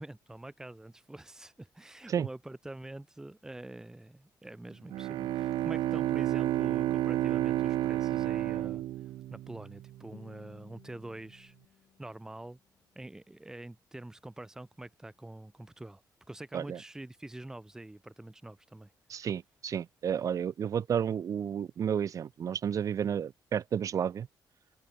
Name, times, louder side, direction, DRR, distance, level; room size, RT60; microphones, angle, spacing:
voice 1, 0.0-8.8 9.3-11.5 12.0-12.6 13.0-16.0 16.3-18.9, right 1 dB, 5° right, 0.7 m, -45 dB
Bowed string instrument, 4.9-10.1, right 14 dB, 85° right, 0.5 m, -30 dB
Guitar, 10.1-13.1, left 9 dB, 55° left, 3.1 m, -59 dB
voice 2, 19.1-24.3, right 8 dB, 45° right, 0.7 m, -31 dB
cardioid pair, 150°, 8 cm